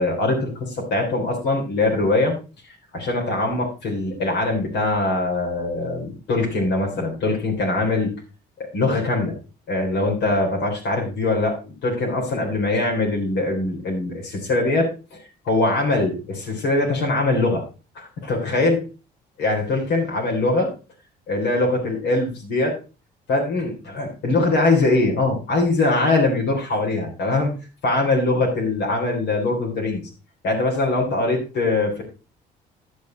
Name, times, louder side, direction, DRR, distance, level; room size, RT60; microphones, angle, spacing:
voice 1, 0.0-2.3 2.7-8.2 8.6-9.4 9.7-17.6 18.0-18.9 19.4-20.7 21.3-22.8 23.3-27.5 27.8-30.1 30.4-32.0, left 2 dB, 90° left, -1 dB, 3.5 m, -22 dB
10.5 x 7.1 x 3.9 m, 0.32 s
cardioid pair, 110°, 17 cm